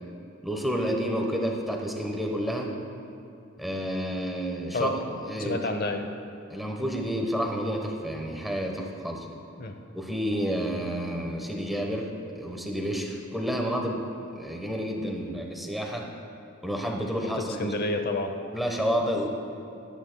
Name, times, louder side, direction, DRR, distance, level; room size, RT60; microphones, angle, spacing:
voice 1, 0.4-2.7 3.6-5.6 6.5-9.3 9.9-14.0 14.3-16.1 16.6-17.7 18.5-19.3, equal, ahead, 1 dB, 1.0 m, -30 dB
voice 2, 5.4-6.1 9.6-9.7 17.4-18.3, left 2 dB, 45° left, 6 dB, 0.8 m, -29 dB
19.0 x 10.5 x 2.3 m, 2.7 s
head